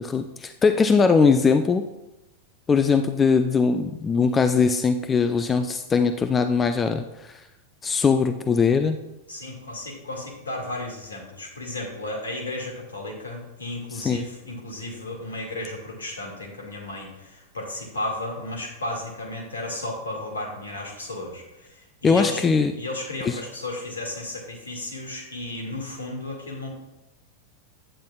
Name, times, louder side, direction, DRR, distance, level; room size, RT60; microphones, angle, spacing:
voice 1, 0.0-1.8 2.7-7.4 7.8-9.0 13.9-14.2 22.0-22.7 23.3-23.4, left 5 dB, 20° left, 8 dB, 0.4 m, -21 dB
voice 2, 9.3-22.4 22.8-26.7, left 2 dB, 75° left, 0 dB, 2.0 m, -34 dB
9.9 x 8.4 x 2.3 m, 0.94 s
figure-of-eight pair, 90°, 0 cm